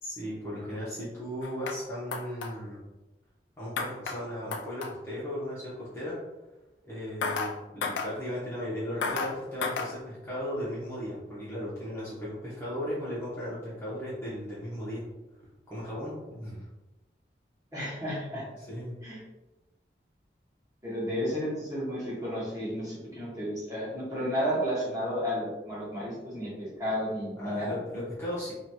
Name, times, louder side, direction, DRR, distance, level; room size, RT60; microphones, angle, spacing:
voice 1, 0.0-2.8 3.6-6.2 6.8-15.0 15.7-16.7 18.7-19.0 27.4-28.5, equal, 15° left, -9 dB, 0.7 m, -36 dB
sound 1, 1.4-1.8 2.1-2.5 3.8-4.2 4.5-4.9 7.2-7.5 7.8-8.1 9.0-9.3 9.6-9.9, left 4 dB, 85° left, 0.3 m, -31 dB
voice 2, 17.7-18.5 19.0-19.2 20.8-27.8, equal, 20° right, -8 dB, 1.0 m, -32 dB
2.8 x 2.8 x 2.2 m, 1.1 s
head